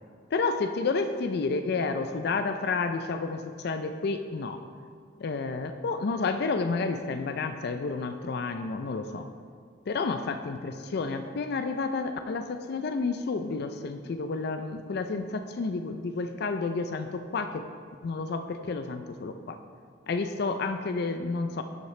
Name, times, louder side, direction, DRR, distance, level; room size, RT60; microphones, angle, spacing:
voice 1, 0.3-4.6 5.2-9.3 9.9-17.7 18.0-19.6 20.1-21.6, left 4 dB, 55° left, 8 dB, 0.4 m, -30 dB
13.0 x 5.8 x 3.2 m, 2.1 s
head